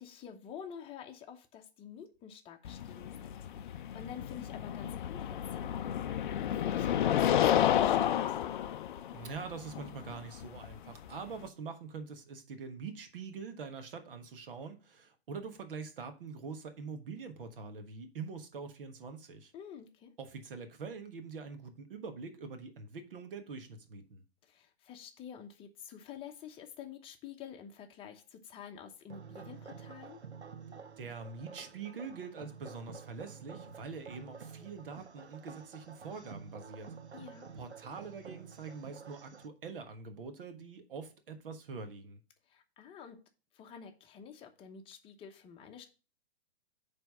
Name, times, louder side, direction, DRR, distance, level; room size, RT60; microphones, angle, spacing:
voice 1, 0.0-6.0 6.4-8.4 19.5-20.1 24.5-30.2 37.1-37.5 42.5-43.2 43.5-45.9, left 8 dB, 15° left, 0.9 m, -49 dB
sound 1, 2.6-11.5, left 10 dB, 50° left, 0.5 m, -31 dB
voice 2, 9.1-19.5 20.2-24.2 31.0-36.9 37.5-42.2, right 5 dB, 55° right, 1.4 m, -44 dB
sound 2, 29.1-39.5, right 6 dB, 90° right, 0.7 m, -50 dB
9.0 x 3.5 x 5.5 m
figure-of-eight pair, 120°, 32 cm